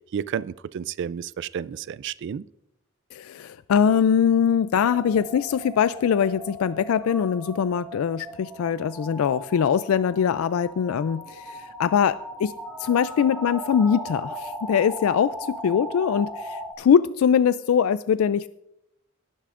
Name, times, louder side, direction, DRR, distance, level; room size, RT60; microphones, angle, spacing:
voice 1, 0.1-2.4, right 8 dB, 60° right, 19 dB, 0.3 m, -31 dB
voice 2, 3.1-12.5 12.8-18.5, left 7 dB, 80° left, 15 dB, 0.3 m, -22 dB
sound 1, 4.9-16.7, equal, 5° right, 1.6 m, -38 dB
19.0 x 10.0 x 2.5 m, 0.81 s
head